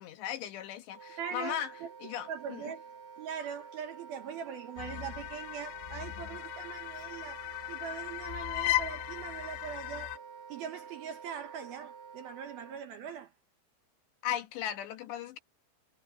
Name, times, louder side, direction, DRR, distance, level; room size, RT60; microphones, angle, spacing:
voice 1, 0.0-1.7 2.0-2.6 14.2-15.4, left 11 dB, 70° left, 3.2 m, -37 dB
Wind instrument woodwind instrument, 0.9-12.8, right 6 dB, 30° right, 5.2 m, -49 dB
voice 2, 1.2-1.9 2.3-2.8 3.2-10.1 10.5-13.3, right 7 dB, 70° right, 2.5 m, -41 dB
sound 1, 4.8-10.2, left 16 dB, 85° left, 2.5 m, -36 dB
omnidirectional pair, 5.6 m